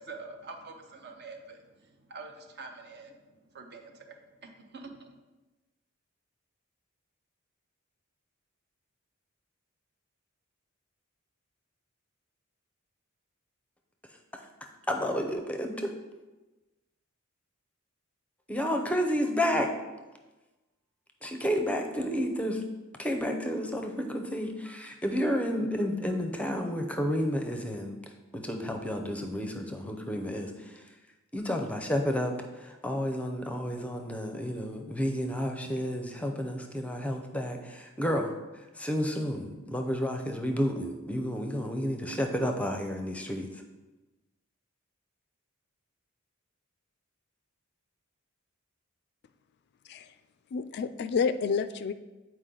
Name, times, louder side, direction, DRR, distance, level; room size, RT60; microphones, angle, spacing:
voice 1, 0.1-1.6 2.1-3.1 3.5-4.1 4.4-4.9, right 3 dB, 55° right, 4 dB, 0.8 m, -45 dB
voice 2, 14.9-15.9 18.5-19.7 21.2-22.6 23.0-28.0 28.3-30.8 31.3-43.5, equal, 5° left, 4 dB, 0.6 m, -31 dB
voice 3, 50.5-51.9, left 5 dB, 55° left, 12 dB, 0.3 m, -29 dB
8.2 x 4.6 x 3.8 m, 1.1 s
head